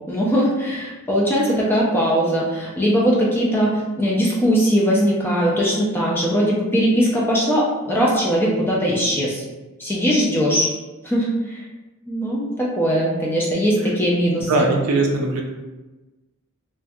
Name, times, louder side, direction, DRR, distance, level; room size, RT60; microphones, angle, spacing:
voice 1, 0.1-9.4 9.8-10.7 11.0-11.6 12.1-14.7, equal, 10° left, -4 dB, 0.4 m, -20 dB
voice 2, 14.5-15.4, right 2 dB, 80° right, 0 dB, 0.4 m, -19 dB
2.2 x 2.2 x 2.6 m, 1.1 s
head